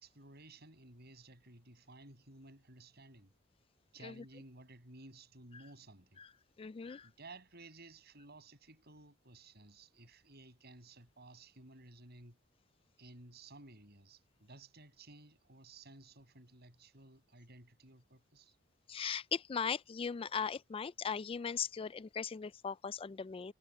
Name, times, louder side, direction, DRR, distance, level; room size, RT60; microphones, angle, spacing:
voice 1, 0.0-3.3 3.9-6.2 7.0-12.4 13.0-18.6, right 2 dB, 55° right, 7.1 m, -56 dB
voice 2, 6.6-7.1 18.9-23.5, left 6 dB, 30° left, 0.3 m, -39 dB
head